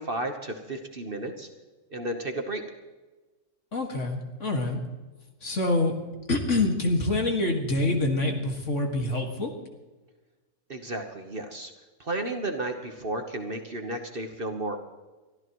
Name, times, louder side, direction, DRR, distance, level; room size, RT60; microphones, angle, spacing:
voice 1, 0.0-1.5 1.9-2.6 10.7-11.7 12.0-14.8, right 2 dB, 40° right, 5 dB, 1.3 m, -33 dB
voice 2, 3.7-4.8 5.4-6.0 6.3-9.5, left 2 dB, 55° left, 2 dB, 2.3 m, -26 dB
23.5 x 13.5 x 3.1 m, 1.2 s
omnidirectional pair, 1.6 m